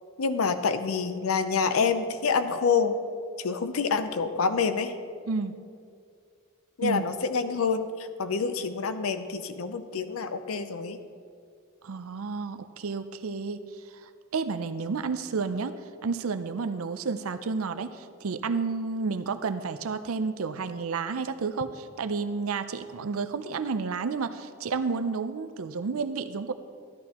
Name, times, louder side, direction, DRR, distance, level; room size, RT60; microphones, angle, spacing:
voice 1, 0.2-2.9 3.4-4.9 6.8-11.0, left 5 dB, 90° left, 10 dB, 0.6 m, -27 dB
voice 2, 11.8-13.6 14.0-15.8 16.0-26.5, right 4 dB, 90° right, 11 dB, 0.5 m, -31 dB
13.0 x 11.5 x 2.9 m, 2.3 s
head